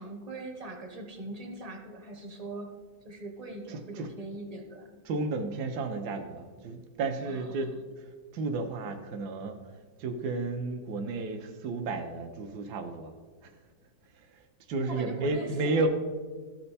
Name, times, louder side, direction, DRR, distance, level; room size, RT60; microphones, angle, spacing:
voice 1, 0.0-2.7 3.0-4.9 7.3-7.6 14.8-15.9, right 2 dB, 30° right, 3 dB, 0.7 m, -40 dB
voice 2, 3.7-4.1 5.0-9.6 10.0-13.1 13.4-13.6 14.1-15.9, right 3 dB, 70° right, 5 dB, 1.1 m, -33 dB
13.0 x 4.4 x 4.1 m, 1.5 s
omnidirectional pair, 2.0 m